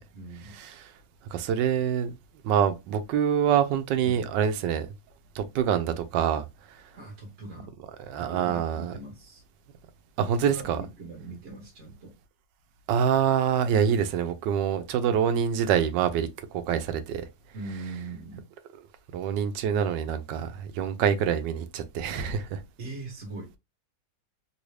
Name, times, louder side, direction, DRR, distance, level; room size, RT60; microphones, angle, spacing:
voice 1, 0.1-0.6 4.0-4.3 6.9-7.7 8.2-9.4 10.5-12.1 17.5-18.4 22.8-23.6, right 2 dB, 50° right, 1.1 m, -41 dB
voice 2, 1.3-2.2 2.4-4.9 5.4-6.4 8.1-8.9 10.2-10.8 12.9-16.3 16.7-17.3 19.1-22.6, right 8 dB, 80° right, 1.2 m, -25 dB
3.2 x 2.6 x 3.1 m
omnidirectional pair, 2.0 m